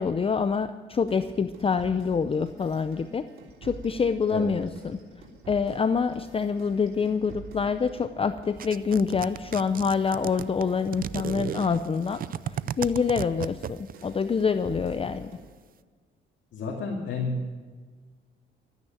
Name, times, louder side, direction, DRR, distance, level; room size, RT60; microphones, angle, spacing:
voice 1, 0.0-3.2 3.6-5.0 5.5-12.2 12.5-15.4, left 5 dB, 30° left, 11 dB, 0.6 m, -26 dB
sound 1, 1.1-8.2 8.4-15.5, right 3 dB, 85° right, 3.3 m, -48 dB
sound 2, 8.6-14.1, right 9 dB, 45° right, 0.5 m, -34 dB
voice 2, 16.5-17.5, left 3 dB, 65° left, -1 dB, 2.4 m, -30 dB
13.5 x 9.6 x 8.9 m, 1.5 s
cardioid pair, 90°, 20 cm